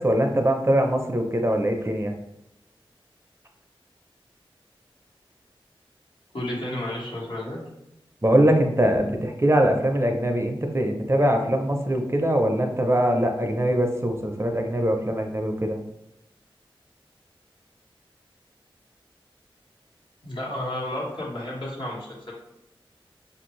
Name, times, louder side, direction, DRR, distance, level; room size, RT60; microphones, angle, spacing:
voice 1, 0.0-2.1 8.2-15.8, right 1 dB, 30° right, 3 dB, 0.6 m, -22 dB
voice 2, 6.3-7.6 20.2-22.3, left 1 dB, 60° left, -4 dB, 1.4 m, -32 dB
5.2 x 2.6 x 3.1 m, 0.85 s
wide cardioid pair, 60°, 9 cm